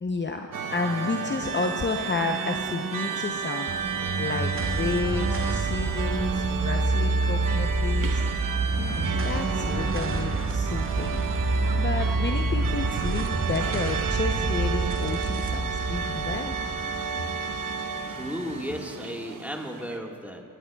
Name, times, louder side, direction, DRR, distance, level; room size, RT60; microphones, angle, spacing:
voice 1, 0.0-3.9 4.2-11.3 11.8-16.5, left 4 dB, 30° left, 3 dB, 0.7 m, -31 dB
sound 1, 0.5-20.0, right 6 dB, 65° right, 0.9 m, -32 dB
sound 2, 3.7-18.3, right 3 dB, 35° right, 0.9 m, -28 dB
voice 2, 18.1-20.4, equal, 5° right, 1 dB, 1.6 m, -34 dB
21.0 x 10.5 x 2.3 m, 2.2 s
cardioid pair, 55°, 35 cm